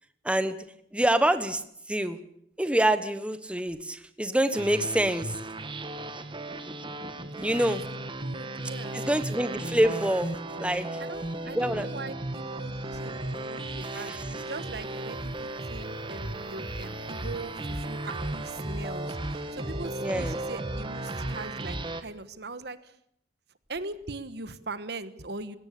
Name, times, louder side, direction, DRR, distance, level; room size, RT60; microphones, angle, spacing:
voice 1, 0.9-1.6 1.9-2.2 2.6-5.4 7.4-7.8 8.9-10.3 10.6-11.0 11.4-11.9 13.9-14.2 20.0-20.4, right 1 dB, 5° right, 11 dB, 1.1 m, -26 dB
sound 1, 4.5-22.0, right 1 dB, 30° right, 1.4 m, -35 dB
voice 2, 7.3-7.8 8.1-9.2 11.0-23.0 23.7-25.6, right 3 dB, 65° right, 13 dB, 1.3 m, -41 dB
sound 2, 10.1-21.4, right 3 dB, 90° right, 6.3 m, -48 dB
20.0 x 17.0 x 8.5 m, 0.71 s
head